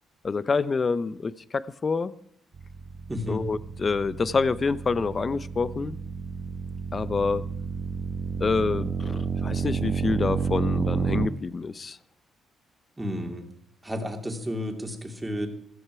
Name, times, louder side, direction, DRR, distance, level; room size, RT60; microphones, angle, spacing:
voice 1, 0.2-2.1 3.3-6.0 6.9-7.4 8.4-12.0, left 4 dB, 30° left, 17 dB, 0.7 m, -27 dB
sound 1, 2.5-11.3, right 6 dB, 40° right, 1.3 m, -31 dB
voice 2, 3.1-3.5 13.0-13.5 13.8-15.5, equal, 10° right, 3 dB, 2.8 m, -32 dB
15.0 x 13.5 x 4.7 m, 0.69 s
cardioid pair, 105°, 0 cm